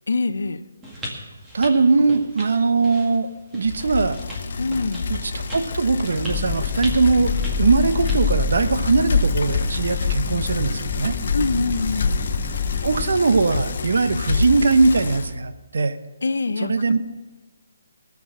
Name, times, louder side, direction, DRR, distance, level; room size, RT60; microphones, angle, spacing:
voice 1, 0.1-0.6 4.6-5.1 11.3-12.1 16.2-16.7, left 3 dB, 80° left, 14 dB, 0.6 m, -24 dB
sound 1, 0.8-8.3, equal, 10° right, 1.9 m, -39 dB
voice 2, 1.5-3.3 3.5-4.2 5.1-7.3 7.6-11.1 12.8-16.0 16.6-17.0, right 3 dB, 70° right, 11 dB, 0.9 m, -20 dB
Bicycle, 3.7-15.3, left 4 dB, 55° left, 1.1 m, -27 dB
sound 2, 6.3-13.1, left 5 dB, 20° left, 0.6 m, -28 dB
18.0 x 7.3 x 6.1 m, 1.2 s
hypercardioid pair, 160°, 0 cm